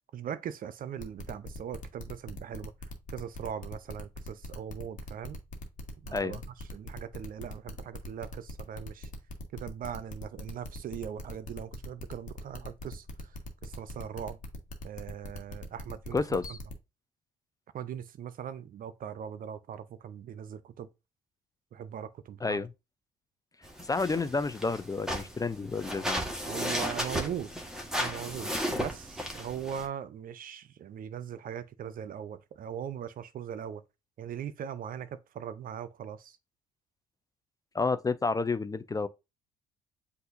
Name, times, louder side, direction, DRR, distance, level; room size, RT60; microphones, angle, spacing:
voice 1, 0.1-2.7 3.1-5.4 6.0-6.4 6.7-9.1 9.5-13.3 13.6-14.4 14.8-16.6 17.7-20.9 21.7-22.6 26.4-27.5 28.0-33.8 34.2-36.4, right 9 dB, 45° right, 0.6 m, -40 dB
sound 1, 1.0-16.7, left 2 dB, 40° left, 1.3 m, -41 dB
voice 2, 16.1-16.6 22.4-22.7 23.8-26.2 37.7-39.1, left 4 dB, 20° left, 0.4 m, -30 dB
sound 2, 23.6-29.9, equal, 5° right, 1.4 m, -34 dB
7.7 x 2.6 x 2.5 m
hypercardioid pair, 50°, 19 cm